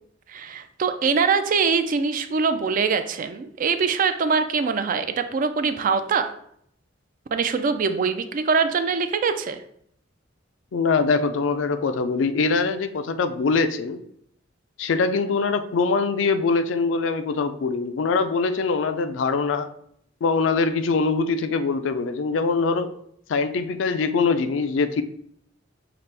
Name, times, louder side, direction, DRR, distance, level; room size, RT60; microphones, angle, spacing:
voice 1, 0.3-6.3 7.3-9.6, right 5 dB, 45° right, 9 dB, 0.3 m, -23 dB
voice 2, 10.7-14.0 14.8-19.7 20.2-22.9 23.3-25.0, left 4 dB, 75° left, 10 dB, 0.4 m, -23 dB
5.8 x 2.5 x 3.3 m, 0.69 s
head